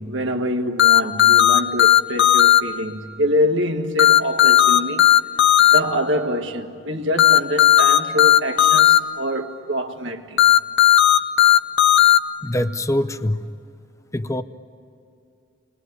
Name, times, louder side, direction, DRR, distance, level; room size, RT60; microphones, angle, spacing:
voice 1, 0.0-5.1 5.7-10.5, equal, 60° right, 1.7 m, -25 dB
sound 1, 0.8-2.6 4.0-5.8 7.2-9.0 10.4-12.2, left 12 dB, 60° left, 0.9 m, -13 dB
voice 2, 12.4-13.4 14.1-14.4, left 1 dB, 15° left, 0.7 m, -23 dB
29.0 x 22.0 x 9.3 m
head